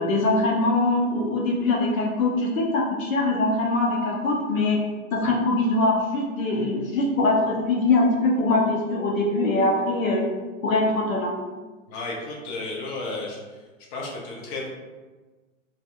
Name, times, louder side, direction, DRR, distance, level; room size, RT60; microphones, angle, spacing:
voice 1, 0.0-4.8 5.1-10.3 10.6-11.4, left 2 dB, 75° left, -2 dB, 0.8 m, -22 dB
voice 2, 11.9-13.6 13.9-14.7, left 2 dB, 40° left, -3 dB, 0.6 m, -33 dB
2.6 x 2.4 x 2.2 m, 1.3 s
hypercardioid pair, 110°, 40 cm